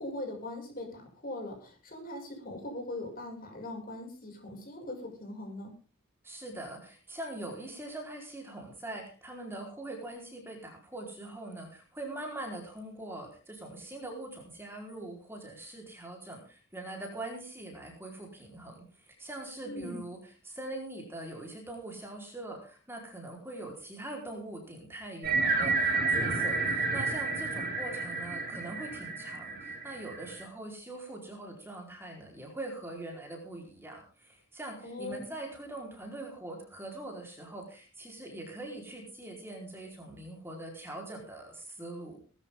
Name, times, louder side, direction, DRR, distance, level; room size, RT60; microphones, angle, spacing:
voice 1, 0.0-5.7 19.6-20.0 34.8-35.3, left 2 dB, 45° left, 1 dB, 6.8 m, -40 dB
voice 2, 6.2-42.2, right 2 dB, 10° right, 1 dB, 4.5 m, -42 dB
sound 1, 25.2-30.4, right 3 dB, 45° right, 7.2 m, -30 dB
19.5 x 13.5 x 3.8 m, 0.37 s
head